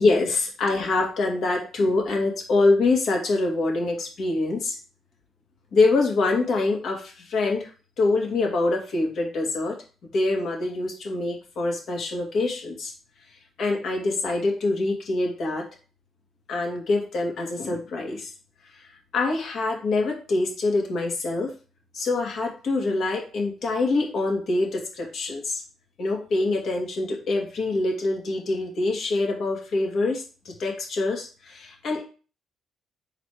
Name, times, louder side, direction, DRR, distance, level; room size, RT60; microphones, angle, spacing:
voice 1, 0.0-4.8 5.7-7.7 8.0-9.8 10.0-12.9 13.6-15.7 16.5-18.3 18.7-18.9 19.1-21.5 21.9-25.6 26.0-32.0, left 3 dB, 60° left, 2 dB, 2.2 m, -25 dB
6.2 x 4.1 x 4.9 m, 0.36 s
cardioid pair, 95°, 0 cm